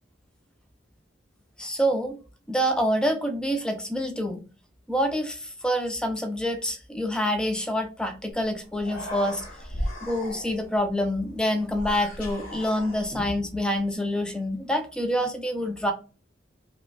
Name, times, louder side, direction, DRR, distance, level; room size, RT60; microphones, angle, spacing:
voice 1, 1.6-2.2 2.5-4.4 4.9-9.4 10.0-15.9, equal, 5° left, 0.4 m, -27 dB
Human voice, 8.3-8.4 8.7-10.8 11.7-13.4, equal, 50° left, 1.1 m, -36 dB
5.0 x 2.2 x 2.2 m
head